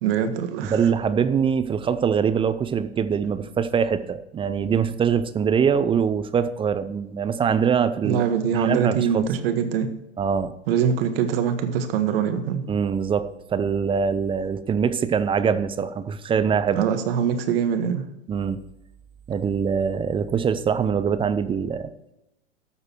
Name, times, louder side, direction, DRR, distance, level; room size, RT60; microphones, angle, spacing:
voice 1, 0.0-0.8 8.0-9.9 10.7-12.6 16.7-18.1, right 8 dB, 55° right, 8 dB, 1.5 m, -23 dB
voice 2, 0.6-9.3 10.2-10.5 12.7-16.8 18.3-18.6 19.3-21.9, right 7 dB, 15° right, 12 dB, 0.6 m, -23 dB
13.0 x 6.6 x 4.6 m, 0.90 s
hypercardioid pair, 105°, 34 cm